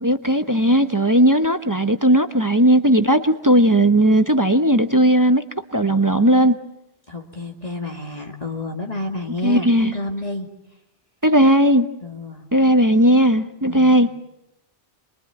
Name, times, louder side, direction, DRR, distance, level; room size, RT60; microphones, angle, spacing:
voice 1, 0.0-5.4 5.7-6.6 9.4-9.9 11.2-11.9 12.5-14.1, right 1 dB, 20° right, 8 dB, 1.0 m, -16 dB
voice 2, 7.1-10.5 12.0-12.5 13.7-14.0, left 2 dB, 35° left, 1 dB, 2.3 m, -30 dB
28.5 x 22.5 x 9.2 m, 0.90 s
omnidirectional pair, 1.1 m